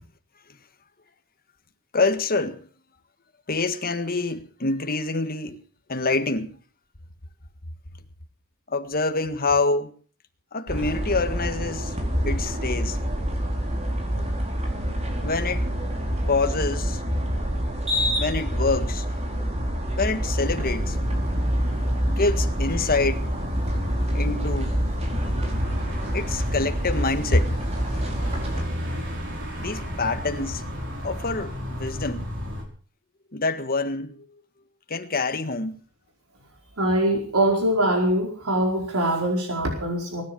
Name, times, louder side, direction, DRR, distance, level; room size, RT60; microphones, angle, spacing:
voice 1, 1.9-2.6 3.5-5.6 5.9-6.6 8.7-9.9 10.5-11.9 12.2-13.0 15.2-15.6 16.3-17.0 18.2-19.0 20.0-21.0 22.1-23.3 24.1-24.8 26.1-27.5 29.6-30.6 31.0-32.3 33.3-34.1 34.9-35.8, left 3 dB, 45° left, 1.7 m, -26 dB
sound 1, 10.7-28.6, equal, 30° right, 4.7 m, -27 dB
sound 2, 20.4-32.6, equal, 60° right, 5.2 m, -34 dB
voice 2, 36.8-40.2, right 1 dB, 80° right, 4.8 m, -23 dB
22.0 x 10.5 x 6.1 m
head